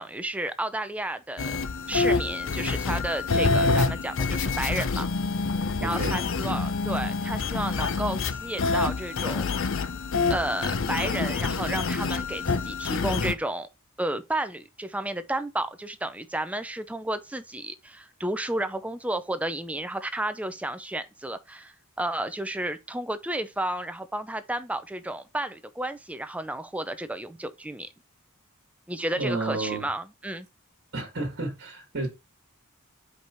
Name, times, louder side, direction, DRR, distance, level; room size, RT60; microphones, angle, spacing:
voice 1, 0.0-1.6 1.9-5.1 5.8-9.5 10.3-13.7 14.0-27.9 28.9-30.5, right 1 dB, 5° right, 0.5 m, -32 dB
sound 1, 1.4-13.3, left 4 dB, 60° left, 0.6 m, -27 dB
voice 2, 5.8-6.2 29.2-29.9 30.9-32.1, right 2 dB, 55° right, 1.9 m, -31 dB
5.3 x 4.7 x 4.4 m
head